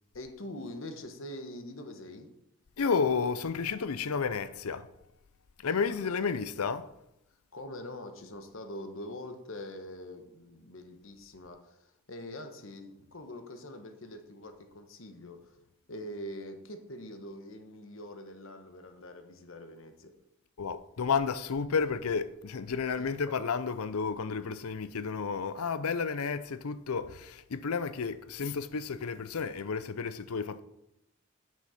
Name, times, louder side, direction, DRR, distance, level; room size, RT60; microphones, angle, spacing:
voice 1, 0.1-2.3 5.7-6.1 6.6-6.7 7.5-15.6 15.9-20.1 23.0-23.1, left 1 dB, 65° left, 1.1 m, -44 dB
voice 2, 2.8-4.9 5.6-6.9 20.6-30.6, left 5 dB, 90° left, 0.6 m, -31 dB
8.6 x 6.4 x 5.7 m
head